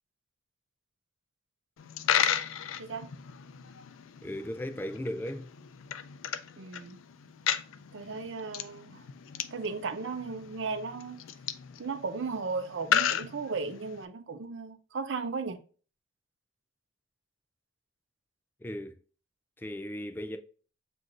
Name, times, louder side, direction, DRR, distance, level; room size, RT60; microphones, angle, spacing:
Coin (dropping), 1.8-14.1, left 9 dB, 80° left, 0.4 m, -34 dB
voice 1, 4.2-5.5 18.6-19.0 19.6-20.4, left 1 dB, 10° left, 0.3 m, -36 dB
voice 2, 6.6-7.0 7.9-9.0 9.5-11.2 11.8-15.6, right 4 dB, 65° right, 0.5 m, -35 dB
7.4 x 2.5 x 2.5 m
head